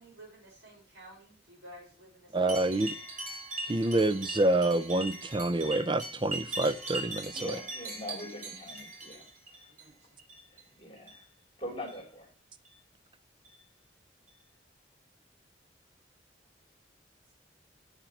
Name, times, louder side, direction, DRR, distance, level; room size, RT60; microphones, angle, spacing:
voice 1, 0.0-3.0 9.8-10.1, equal, 75° right, 6.0 m, -53 dB
voice 2, 2.3-2.9 3.7-7.5, right 2 dB, 25° right, 0.6 m, -27 dB
sound 1, 2.5-9.8 10.2-10.6 11.0-11.2 11.8-12.0 12.6-12.7 13.4-13.6 14.3-14.4, right 2 dB, 50° right, 3.7 m, -40 dB
voice 3, 7.3-9.7 10.5-11.3 11.6-12.3, left 1 dB, 30° left, 2.7 m, -43 dB
8.4 x 5.8 x 7.2 m
head